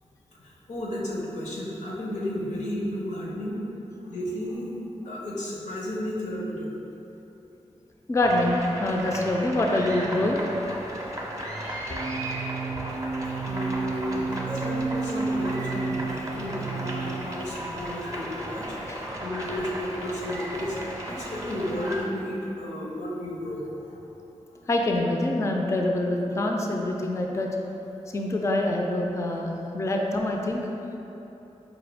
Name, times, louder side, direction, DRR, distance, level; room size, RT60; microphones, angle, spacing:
voice 1, 0.4-3.6 4.0-4.7 5.0-6.7 13.2-20.8 21.1-24.0 24.5-24.7, left 1 dB, 85° left, -4 dB, 0.7 m, -33 dB
voice 2, 8.1-10.4 11.9-12.0 18.9-19.0 24.7-27.5 28.1-30.6, left 1 dB, 25° left, 1 dB, 0.3 m, -25 dB
sound 1, 8.2-22.0, right 1 dB, 25° right, 0.6 m, -35 dB
sound 2, 11.9-17.6, right 4 dB, 85° right, 0.4 m, -31 dB
4.7 x 2.2 x 3.3 m, 3.0 s
cardioid pair, 65°, 12 cm